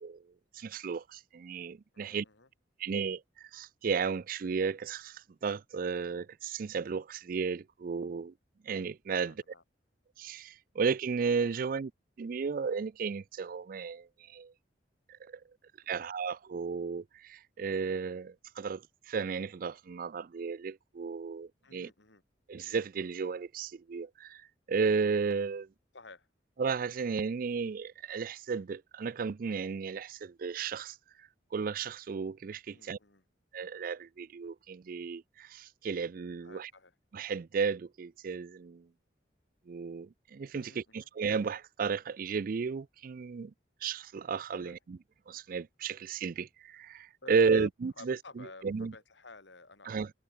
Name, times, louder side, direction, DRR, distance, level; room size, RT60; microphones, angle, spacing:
voice 1, 0.5-2.3 2.8-8.3 8.6-9.4 10.2-11.9 12.2-14.5 15.1-15.4 15.9-21.9 22.5-25.7 26.6-33.0 33.5-36.7 37.1-38.9 39.7-43.5 43.8-45.0 45.3-48.9 49.9-50.1, right 5 dB, 50° right, 0.4 m, -34 dB
voice 2, 1.9-2.5 9.1-9.6 11.5-11.6 15.8-15.9 21.6-22.2 25.9-26.3 32.7-33.2 36.4-36.9 40.5-41.0 44.5-44.8 47.2-47.7 48.0-50.0, left 3 dB, 90° left, 3.6 m, -51 dB
head